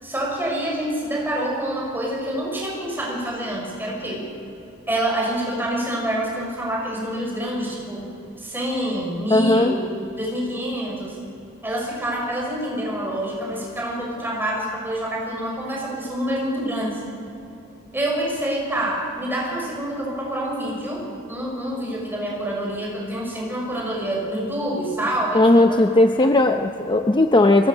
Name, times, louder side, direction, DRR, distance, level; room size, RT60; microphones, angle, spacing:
voice 1, 0.0-4.2 4.9-8.0 8.4-9.8 10.2-11.2 11.6-17.0 17.9-25.8 26.2-26.3, right 1 dB, 10° right, -2 dB, 6.0 m, -27 dB
voice 2, 9.3-9.7 25.3-27.7, left 2 dB, 20° left, 5 dB, 0.7 m, -17 dB
23.5 x 21.5 x 6.7 m, 3.0 s
head